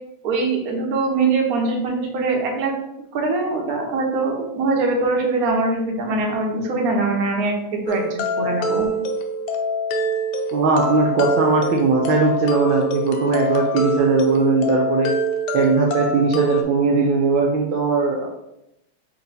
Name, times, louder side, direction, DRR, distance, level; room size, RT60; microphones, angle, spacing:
voice 1, 0.2-2.7 3.1-8.9, right 3 dB, 50° right, 0 dB, 1.2 m, -22 dB
sound 1, 7.9-16.6, right 1 dB, 75° left, 0.9 m, -24 dB
voice 2, 10.5-15.1 15.5-18.3, right 4 dB, 75° right, 1 dB, 1.3 m, -19 dB
4.5 x 2.9 x 4.0 m, 0.85 s
omnidirectional pair, 2.4 m